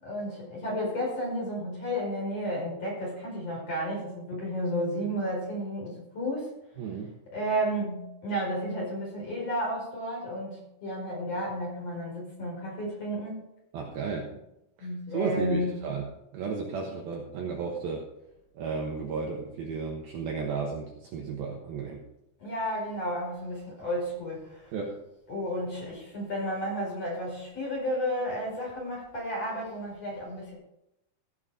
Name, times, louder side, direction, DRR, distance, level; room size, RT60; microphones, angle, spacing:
voice 1, 0.0-6.5 7.3-13.4 14.8-15.8 22.4-24.7 25.3-30.6, equal, 30° left, -3 dB, 5.4 m, -32 dB
voice 2, 6.8-7.1 13.7-14.3 14.8-16.1 16.3-18.0 18.5-22.0 24.7-25.0, right 5 dB, 70° right, 0 dB, 2.5 m, -33 dB
16.0 x 7.5 x 4.9 m, 0.85 s
omnidirectional pair, 5.6 m